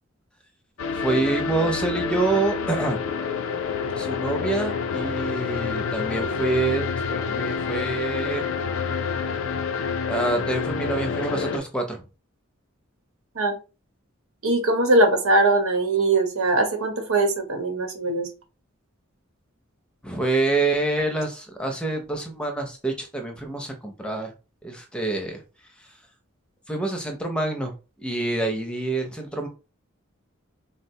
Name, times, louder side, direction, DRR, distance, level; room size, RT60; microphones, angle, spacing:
sound 1, 0.8-11.6, left 5 dB, 70° left, 0.5 m, -28 dB
voice 1, 0.9-3.0 4.0-6.8 7.1-8.4 10.1-12.0 20.0-24.3 24.6-25.4 26.7-27.7 28.0-29.5, right 2 dB, 5° left, 4 dB, 0.5 m, -26 dB
voice 2, 14.4-18.3, right 2 dB, 80° right, 4 dB, 1.0 m, -21 dB
3.9 x 2.1 x 2.7 m, 0.31 s
head